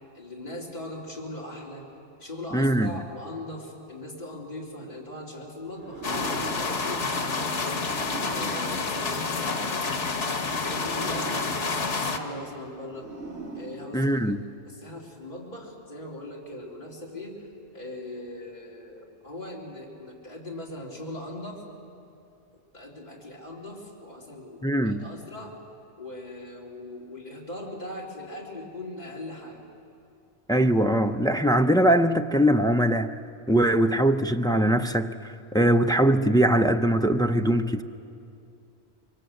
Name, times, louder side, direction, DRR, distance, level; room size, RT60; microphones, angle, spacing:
voice 1, 0.1-1.8 2.2-7.9 8.2-10.0 10.5-11.4 11.6-13.1 13.5-17.4 17.7-21.6 22.7-25.6 26.0-29.6, left 1 dB, 40° left, 3.4 m, -40 dB
voice 2, 2.5-2.9 13.9-14.4 24.6-25.1 30.5-33.1 33.5-35.1 35.5-37.8, right 1 dB, 5° left, 0.3 m, -21 dB
sound 1, 5.7-9.8 10.5-14.5, right 2 dB, 75° right, 2.7 m, -42 dB
sound 2, 6.0-12.2, left 4 dB, 90° left, 1.7 m, -29 dB
26.0 x 23.5 x 7.8 m
omnidirectional pair, 1.2 m